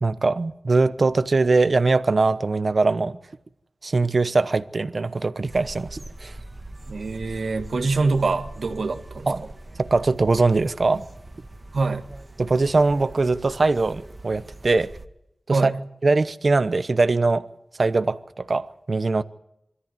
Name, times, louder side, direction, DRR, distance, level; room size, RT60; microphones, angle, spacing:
voice 1, 0.0-3.2 3.8-6.4 9.3-9.4 9.8-11.0 12.4-14.9 15.5-15.7 16.0-17.4 17.8-19.2, right 3 dB, 55° right, 1.0 m, -21 dB
sound 1, 5.5-15.1, right 1 dB, 30° right, 1.7 m, -42 dB
voice 2, 6.9-9.3 11.7-12.1 15.5-15.7, right 3 dB, 85° right, 1.9 m, -24 dB
24.0 x 14.0 x 9.6 m
wide cardioid pair, 65°, 0 cm